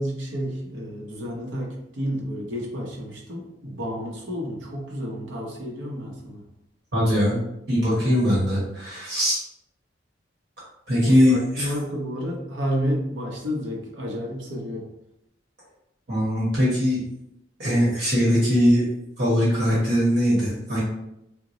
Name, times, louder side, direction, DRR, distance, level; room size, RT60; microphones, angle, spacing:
voice 1, 0.0-6.4 10.9-14.9, equal, 90° right, -1 dB, 0.8 m, -31 dB
voice 2, 6.9-7.4 7.7-9.4 10.9-11.7 16.1-17.0 17.6-18.9 19.2-20.8, equal, 60° right, -7 dB, 1.2 m, -21 dB
2.9 x 2.1 x 3.8 m, 0.82 s
head